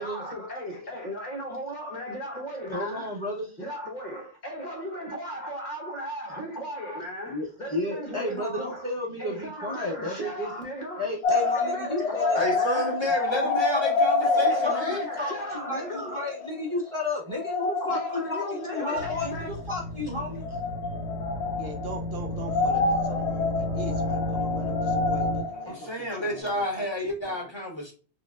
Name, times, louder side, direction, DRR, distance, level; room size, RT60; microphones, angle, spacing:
voice 1, 0.0-3.1 3.6-8.9 9.2-11.1 11.5-13.0 14.2-16.2 17.8-19.5, equal, 45° left, 1.1 m, -36 dB
voice 2, 2.7-3.6 7.3-10.5 11.0-12.4 13.4-13.8 14.4-20.6, left 2 dB, 30° right, 0.8 m, -33 dB
sound 1, 11.2-16.6 16.9-17.0 17.3-19.6 20.4-22.1 22.4-26.4, left 3 dB, 80° left, 0.9 m, -28 dB
voice 3, 12.3-15.0 18.9-19.0 25.5-27.9, left 1 dB, 25° left, 1.5 m, -30 dB
sound 2, 19.0-25.4, left 1 dB, 5° right, 1.4 m, -32 dB
voice 4, 21.6-26.9 27.2-27.3, right 2 dB, 70° right, 0.8 m, -42 dB
4.3 x 2.3 x 2.2 m
omnidirectional pair, 1.1 m